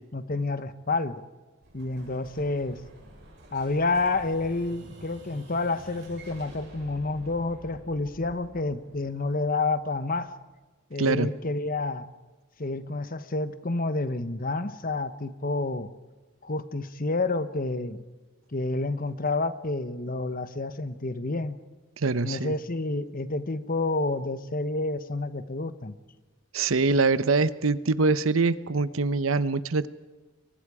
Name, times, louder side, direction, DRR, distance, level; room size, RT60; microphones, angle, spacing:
voice 1, 0.1-1.2 1.7-2.8 3.5-10.3 10.9-12.1 12.6-15.9 16.4-18.0 18.5-21.6 22.2-26.0, left 3 dB, 45° left, 12 dB, 1.1 m, -29 dB
Explosion, 1.6-10.3, right 1 dB, 55° right, 7.0 m, -49 dB
voice 2, 11.0-11.3 22.0-22.5 26.5-29.9, right 3 dB, 85° right, 15 dB, 0.9 m, -24 dB
29.5 x 23.5 x 4.9 m, 1.3 s
head